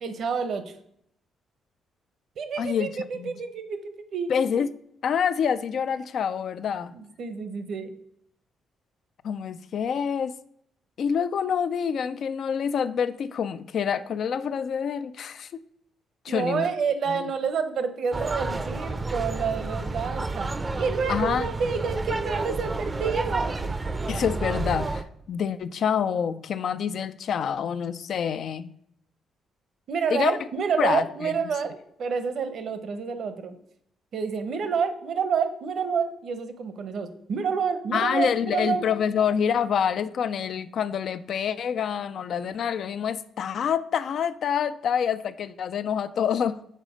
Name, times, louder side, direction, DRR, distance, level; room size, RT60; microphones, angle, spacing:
voice 1, 0.0-0.7 2.4-4.3 6.9-7.9 16.3-23.7 29.9-33.6 34.1-38.9, right 6 dB, 60° right, 0.8 m, -29 dB
voice 2, 2.6-3.3 4.3-4.7 5.0-6.9 9.2-10.3 11.0-15.6 16.2-16.7 17.1-17.2 21.1-21.5 24.1-28.7 30.1-30.4 30.8-31.3 37.9-46.6, left 7 dB, 60° left, 0.3 m, -27 dB
sound 1, 18.1-25.0, right 3 dB, 25° right, 0.5 m, -30 dB
6.6 x 4.1 x 4.9 m
cardioid pair, 90°, 0 cm